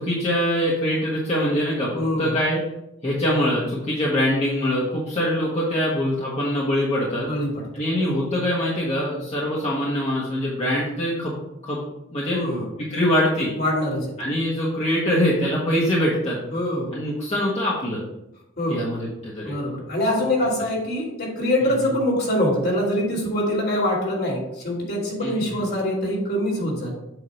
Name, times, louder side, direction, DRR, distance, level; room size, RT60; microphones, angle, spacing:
voice 1, 0.0-1.9 2.2-2.6 3.0-7.3 7.7-11.3 11.6-11.8 12.1-12.4 12.9-13.5 14.2-16.4 16.9-18.0 18.7-19.6 21.6-21.7 25.2-25.5, equal, 30° left, -7 dB, 1.4 m, -23 dB
voice 2, 2.0-2.4 7.3-7.6 12.3-12.7 13.6-14.1 16.5-16.9 18.6-18.8 19.4-26.9, left 1 dB, 50° left, -2 dB, 2.4 m, -24 dB
8.1 x 2.9 x 5.8 m, 0.88 s
head